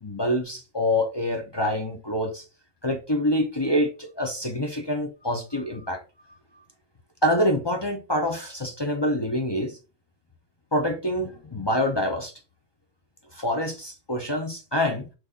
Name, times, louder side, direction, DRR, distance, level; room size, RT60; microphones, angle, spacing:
voice 1, 0.0-2.4 2.8-6.0 7.2-9.8 10.7-12.3 13.3-15.1, left 1 dB, 25° left, 0.7 m, -26 dB
6.4 x 4.0 x 3.7 m
omnidirectional pair, 1.2 m